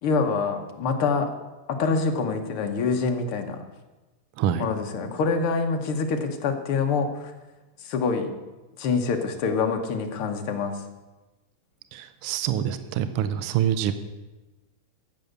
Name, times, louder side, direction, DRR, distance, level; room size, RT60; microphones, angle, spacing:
voice 1, 0.0-1.3 1.7-3.6 4.6-7.3 7.8-8.3 8.8-10.8, left 4 dB, 55° left, 5 dB, 1.8 m, -25 dB
voice 2, 4.4-4.7 11.9-13.9, right 10 dB, 75° right, 11 dB, 1.3 m, -26 dB
14.0 x 9.2 x 6.7 m, 1.1 s
omnidirectional pair, 3.3 m